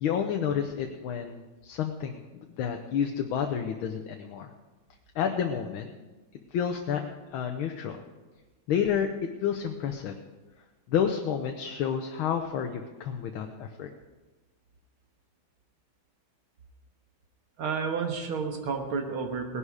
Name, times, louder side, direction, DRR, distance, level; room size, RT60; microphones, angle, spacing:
voice 1, 0.0-4.5 5.1-5.9 6.5-7.0 7.3-8.0 8.7-9.1 9.4-10.2 10.9-13.9, left 8 dB, 75° left, 3 dB, 1.7 m, -30 dB
voice 2, 17.6-19.6, right 5 dB, 75° right, 4 dB, 2.4 m, -31 dB
18.5 x 11.0 x 4.9 m, 1.2 s
omnidirectional pair, 2.3 m